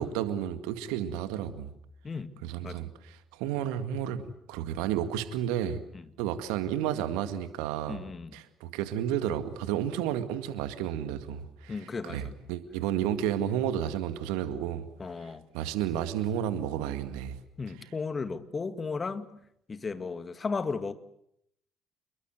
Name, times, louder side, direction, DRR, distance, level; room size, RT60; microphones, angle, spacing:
voice 1, 0.0-1.7 2.4-5.8 6.2-8.0 8.3-11.8 12.0-14.9 15.2-15.3 15.5-17.4, right 10 dB, 70° right, 2.1 m, -32 dB
voice 2, 7.9-8.4 11.7-12.4 15.0-15.5 17.6-19.3 19.7-20.9, left 4 dB, 30° left, 2.2 m, -35 dB
28.0 x 22.5 x 8.0 m
figure-of-eight pair, 50°, 0 cm